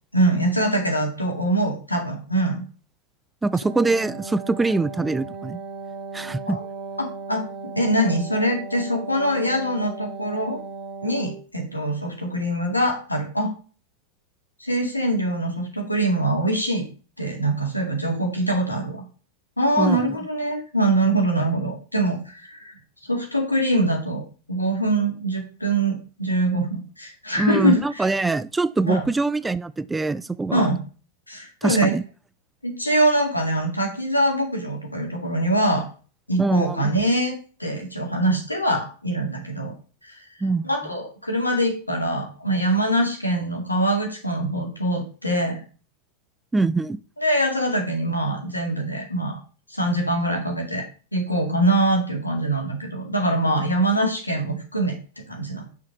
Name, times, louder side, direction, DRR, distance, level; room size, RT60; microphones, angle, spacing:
voice 1, 0.1-2.6 6.5-6.6 7.0-7.4 7.8-10.6 11.0-13.5 14.6-16.9 17.2-19.0 19.6-22.7 23.1-24.2 24.5-28.1 28.9-29.1 30.5-30.8 31.3-31.9 32.6-35.8 36.3-39.7 40.0-40.2 40.6-45.6 47.2-49.4 49.7-50.8 51.1-55.0 55.3-55.6, right 1 dB, 85° left, 2.1 m, -23 dB
voice 2, 3.4-5.6 6.1-6.6 19.8-20.2 27.4-30.7 31.6-32.0 36.4-36.9 40.4-40.7 46.5-47.0, right 3 dB, 10° right, 0.3 m, -23 dB
Wind instrument woodwind instrument, 3.5-11.5, right 4 dB, 35° right, 1.2 m, -36 dB
5.7 x 4.6 x 6.4 m
figure-of-eight pair, 90°, 0 cm